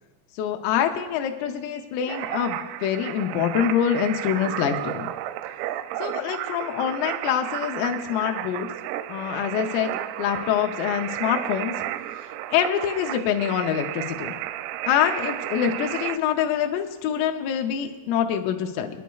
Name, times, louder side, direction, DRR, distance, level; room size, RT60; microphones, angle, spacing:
voice 1, 0.4-5.1 6.0-8.7 9.1-9.9 10.2-11.7 12.5-14.4 14.9-18.9, left 9 dB, 90° left, 4 dB, 3.4 m, -25 dB
sound 1, 2.1-16.2, right 13 dB, 85° right, 3.1 m, -33 dB
28.0 x 10.5 x 2.3 m, 1.3 s
omnidirectional pair, 5.7 m